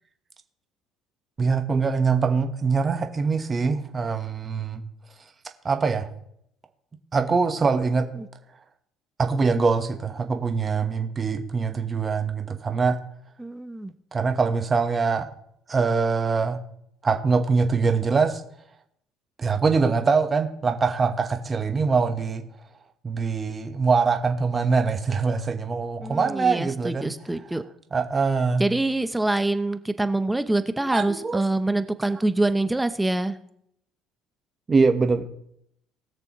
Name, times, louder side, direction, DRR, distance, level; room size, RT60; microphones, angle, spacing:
voice 1, 1.4-4.8 5.6-6.1 7.1-8.1 9.2-13.0 14.1-15.3 15.7-16.6 17.0-18.4 19.4-22.4 23.0-27.1 27.9-28.6 30.9-31.4 34.7-35.2, right 4 dB, 30° right, 6 dB, 1.0 m, -23 dB
voice 2, 13.4-13.9 26.0-27.6 28.6-33.4, right 2 dB, 10° right, 11 dB, 0.7 m, -25 dB
20.0 x 6.7 x 3.0 m, 0.72 s
cardioid pair, 105°, 0 cm